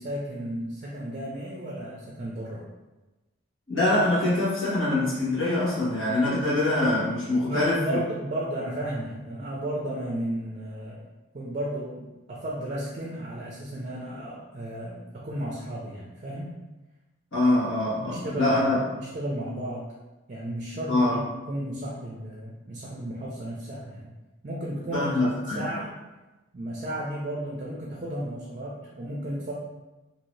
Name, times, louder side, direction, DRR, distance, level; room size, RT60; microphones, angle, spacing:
voice 1, 0.0-2.6 7.4-11.0 11.3-16.5 18.0-19.9 20.3-24.1 24.4-25.9 26.5-29.5, right 1 dB, 35° right, -3 dB, 0.4 m, -34 dB
voice 2, 3.7-8.0 17.3-18.8 20.9-21.2 24.9-25.6, left 2 dB, 75° left, -9 dB, 1.3 m, -24 dB
2.7 x 2.7 x 3.1 m, 1.1 s
head